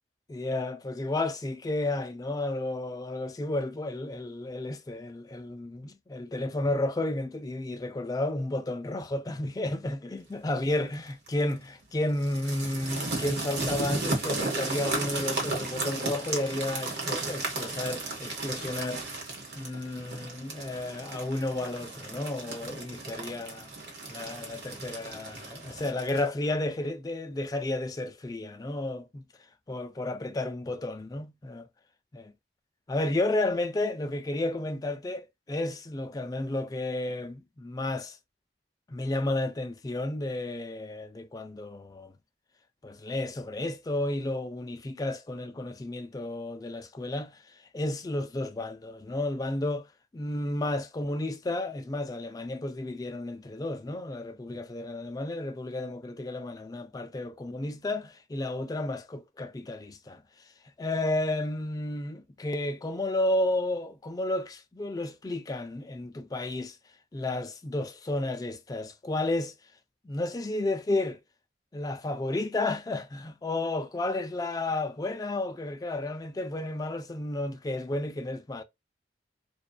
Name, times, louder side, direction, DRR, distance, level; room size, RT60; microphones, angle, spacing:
voice 1, 0.3-19.0 19.5-23.7 24.1-29.2 29.7-31.7 32.1-32.3 32.9-38.2 38.9-42.1 42.8-49.9 50.1-60.2 60.8-66.8 67.1-69.5 70.0-71.2 71.7-78.6, left 2 dB, 20° left, 0.3 m, -32 dB
sound 1, 10.9-11.3 12.2-26.3, right 2 dB, 65° right, 1.1 m, -35 dB
2.6 x 2.2 x 2.2 m
head